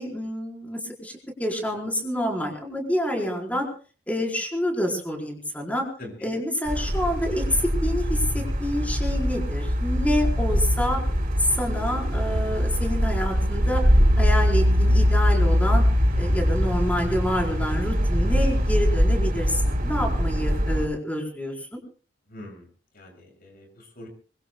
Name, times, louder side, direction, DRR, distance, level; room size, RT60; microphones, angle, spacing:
voice 1, 0.0-3.7 4.1-5.9 6.2-11.0 11.4-13.8 14.2-15.8 16.2-21.8, equal, 10° left, 0 dB, 4.5 m, -28 dB
voice 2, 6.0-6.3 22.3-22.6 22.9-24.1, left 1 dB, 55° left, 2 dB, 6.8 m, -43 dB
sound 1, 6.7-20.9, equal, 50° right, 5.0 m, -22 dB
25.0 x 23.0 x 2.3 m, 0.39 s
head